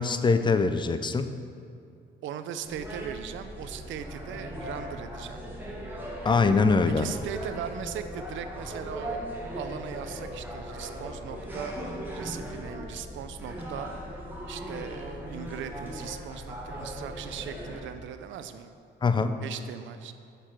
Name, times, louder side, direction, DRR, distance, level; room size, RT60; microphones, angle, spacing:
voice 1, 0.0-1.3 6.2-7.1 19.0-19.3, left 4 dB, 25° left, 10 dB, 0.4 m, -23 dB
voice 2, 2.2-5.5 7.0-9.2 9.6-11.7 12.1-13.9 14.5-18.8 19.4-20.1, right 9 dB, 75° right, 10 dB, 0.5 m, -39 dB
sound 1, 2.6-17.8, equal, 10° right, 1.8 m, -38 dB
6.7 x 4.4 x 5.8 m, 2.4 s
cardioid pair, 90°, 20 cm